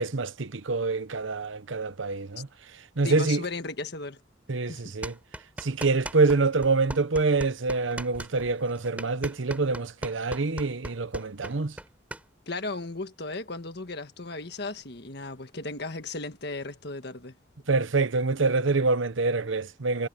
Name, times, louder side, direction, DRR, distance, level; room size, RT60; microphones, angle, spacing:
voice 1, 0.0-2.5 3.0-3.4 4.5-5.1 5.6-11.8 17.7-20.1, right 3 dB, 80° right, 0.9 m, -26 dB
voice 2, 3.0-4.2 4.7-4.9 12.5-17.3, left 3 dB, 55° left, 1.6 m, -36 dB
sound 1, 5.0-6.4 6.6-12.2, right 1 dB, 5° right, 5.7 m, -38 dB
head